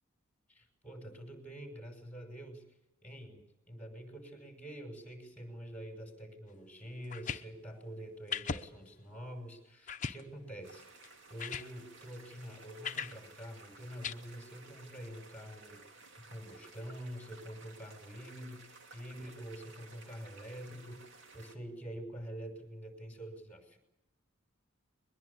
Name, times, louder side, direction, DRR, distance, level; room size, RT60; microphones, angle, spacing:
voice 1, 0.5-2.7 3.0-15.8 16.3-23.8, equal, 5° left, 4 dB, 5.9 m, -46 dB
sound 1, 7.0-7.4 8.3-8.6 9.1-9.2 9.9-10.2 11.0-11.1 11.4-11.7 12.8-13.1 14.0-14.1, left 6 dB, 40° left, 0.9 m, -37 dB
sound 2, 10.6-21.6, right 3 dB, 60° right, 2.7 m, -56 dB
22.0 x 21.5 x 8.3 m, 0.92 s
head